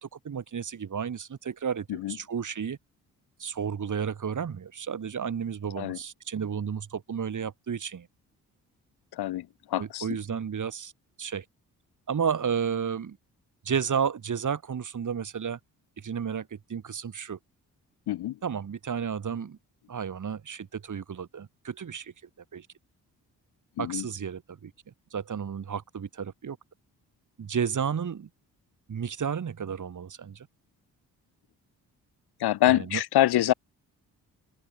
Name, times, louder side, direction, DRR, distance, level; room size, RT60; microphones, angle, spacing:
voice 1, 0.0-2.8 3.4-8.1 9.8-10.9 11.2-11.4 12.1-13.2 13.7-15.6 16.0-17.4 18.4-19.6 19.9-22.1 22.5-22.7 23.8-24.7 25.1-26.6 27.4-28.3 28.9-30.5 32.7-33.0, right 7 dB, 45° right, 1.8 m, -32 dB
voice 2, 9.1-10.1 18.1-18.4 23.8-24.0 32.4-33.5, left 14 dB, 65° left, 0.8 m, -25 dB
open air
hypercardioid pair, 45°, 42 cm